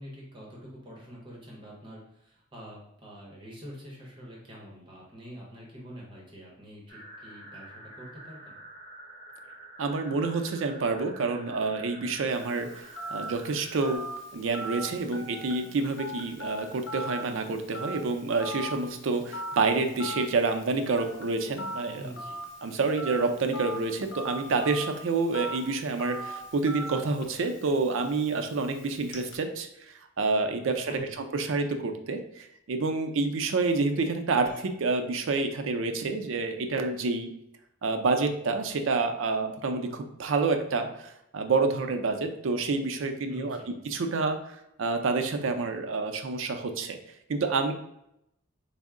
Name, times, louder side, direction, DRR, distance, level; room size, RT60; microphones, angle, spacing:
voice 1, 0.0-8.5 21.9-22.4 30.9-31.1 43.3-43.7, equal, 25° right, -3 dB, 0.9 m, -45 dB
sound 1, 6.9-14.0, right 1 dB, 25° left, 0.8 m, -48 dB
voice 2, 9.8-12.9 13.1-14.0 14.3-22.1 22.6-37.3 37.8-43.6 43.8-44.4 44.8-47.0 47.3-47.7, right 3 dB, 85° right, 6 dB, 0.4 m, -28 dB
Telephone, 12.3-29.4, equal, 75° left, 0.7 m, -41 dB
sound 2, 27.2-27.7 30.9-31.4 34.5-34.8, left 4 dB, 40° left, 0.3 m, -48 dB
4.3 x 2.0 x 3.6 m, 0.80 s
head